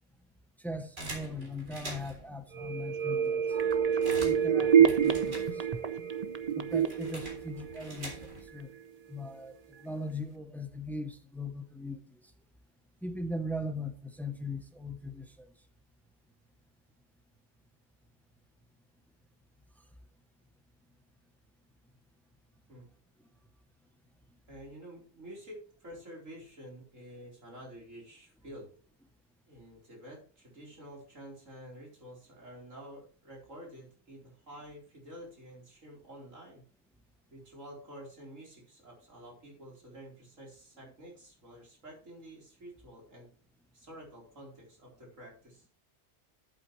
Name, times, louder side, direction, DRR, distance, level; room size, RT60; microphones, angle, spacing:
voice 1, 0.6-3.6 4.1-5.7 6.5-8.2 8.5-8.7 9.1-9.5 9.8-12.2 13.0-15.5, left 1 dB, ahead, 0.7 m, -39 dB
sound 1, 1.0-2.3 2.9-3.0 3.3-5.9 6.2-8.6, right 1 dB, 70° right, 4.0 m, -45 dB
sound 2, 2.5-8.2 8.6-8.7, right 8 dB, 40° right, 0.7 m, -27 dB
voice 2, 24.5-28.7 29.5-36.6 37.3-43.3 43.7-45.7, equal, 90° right, 4.6 m, -49 dB
11.5 x 8.1 x 3.2 m
omnidirectional pair, 1.3 m